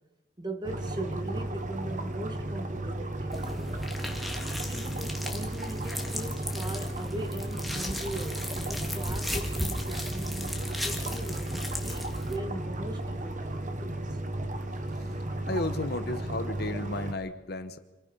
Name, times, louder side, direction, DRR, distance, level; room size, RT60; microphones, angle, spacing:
voice 1, 0.4-3.9 4.7-14.2, right 1 dB, 25° right, 1.9 m, -40 dB
sound 1, 0.6-17.1, right 1 dB, 45° right, 1.4 m, -34 dB
sound 2, 3.3-12.4, left 1 dB, ahead, 2.0 m, -36 dB
voice 2, 15.5-17.8, left 2 dB, 60° left, 1.2 m, -33 dB
26.5 x 19.0 x 5.5 m
head